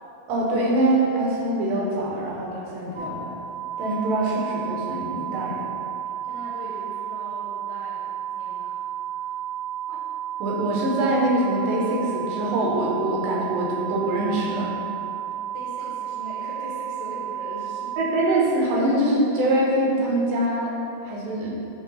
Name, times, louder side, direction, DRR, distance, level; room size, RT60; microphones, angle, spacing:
voice 1, 0.3-3.3 3.8-5.6 9.9-10.0 10.4-14.7 18.0-20.7 21.0-21.6, right 1 dB, 90° right, -4 dB, 3.0 m, -24 dB
sound 1, 2.9-18.0, right 10 dB, 60° right, 2.0 m, -32 dB
voice 2, 6.2-8.9 9.1-9.3 15.5-17.9, left 1 dB, 70° left, -5 dB, 1.9 m, -40 dB
8.1 x 3.2 x 5.4 m, 2.8 s
omnidirectional pair, 4.1 m